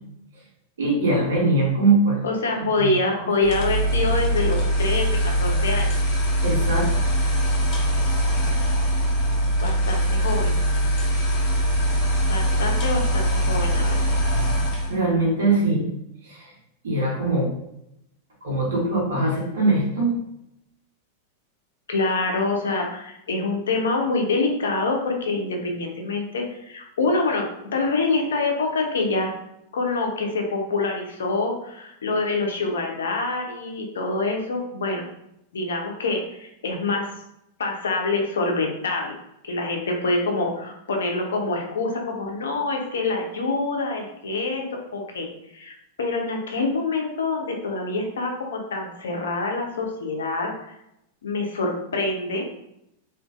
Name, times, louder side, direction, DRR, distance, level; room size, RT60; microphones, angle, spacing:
voice 1, 0.8-2.9 6.4-7.1 14.9-15.9 16.2-16.5 16.8-17.5 18.4-20.1, right 2 dB, 75° right, -4 dB, 1.1 m, -22 dB
voice 2, 2.2-5.9 9.6-10.5 12.3-14.2 21.9-29.3 29.7-35.0 35.5-37.1 37.6-39.2 39.4-50.7 51.2-52.5, left 3 dB, 75° left, 2 dB, 0.5 m, -26 dB
sound 1, 3.4-15.0, equal, 45° left, 1.0 m, -22 dB
2.5 x 2.4 x 2.3 m, 0.81 s
hypercardioid pair, 100°, 0 cm